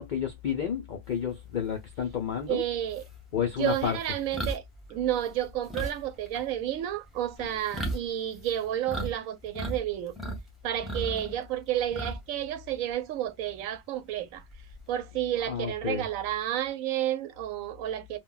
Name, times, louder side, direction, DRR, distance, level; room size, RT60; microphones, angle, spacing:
voice 1, 0.0-2.6 3.3-4.0 7.4-7.5 15.4-16.0, left 8 dB, 70° left, 0.4 m, -31 dB
sound 1, 2.4-2.5 2.9-9.1 9.4-10.4 10.7-12.4 12.7-12.9 14.3-14.9, right 1 dB, ahead, 0.6 m, -36 dB
voice 2, 2.5-3.0 3.6-4.6 4.9-10.2 10.6-14.4 14.9-18.2, right 11 dB, 80° right, 1.0 m, -31 dB
2.3 x 2.1 x 3.7 m
omnidirectional pair, 1.4 m